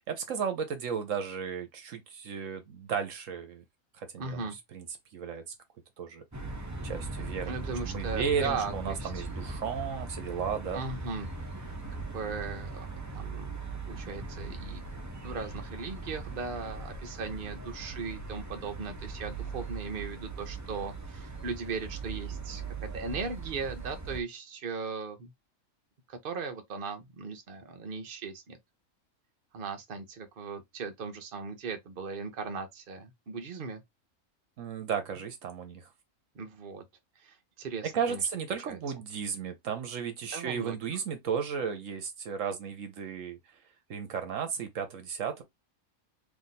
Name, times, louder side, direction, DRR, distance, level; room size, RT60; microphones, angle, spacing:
voice 1, 0.0-3.6 4.0-4.9 5.1-5.4 6.0-6.2 6.8-7.5 7.8-10.8 34.6-35.9 37.9-43.4 43.9-45.4, right 7 dB, 70° right, 1.1 m, -34 dB
voice 2, 4.2-4.6 7.5-9.3 10.7-11.3 12.1-12.9 13.1-13.6 13.9-14.8 15.2-25.3 26.1-28.6 29.5-33.8 36.3-36.8 37.2-38.2 38.7-38.8 40.3-40.8, right 4 dB, 45° right, 0.9 m, -38 dB
sound 1, 6.3-24.2, right 3 dB, 15° right, 0.8 m, -39 dB
3.5 x 2.6 x 4.1 m
omnidirectional pair, 1.4 m